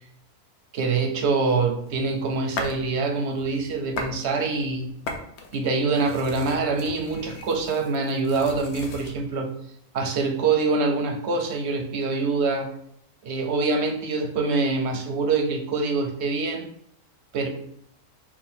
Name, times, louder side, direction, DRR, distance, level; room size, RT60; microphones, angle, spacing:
voice 1, 0.7-4.9 5.5-9.5 9.9-12.7 13.2-16.7 17.3-17.5, right 3 dB, 60° right, 3 dB, 0.8 m, -25 dB
sound 1, 1.5-2.9 3.3-4.2 4.5-9.2, left 3 dB, 60° left, 0.8 m, -37 dB
4.8 x 2.1 x 4.3 m, 0.71 s
omnidirectional pair, 1.6 m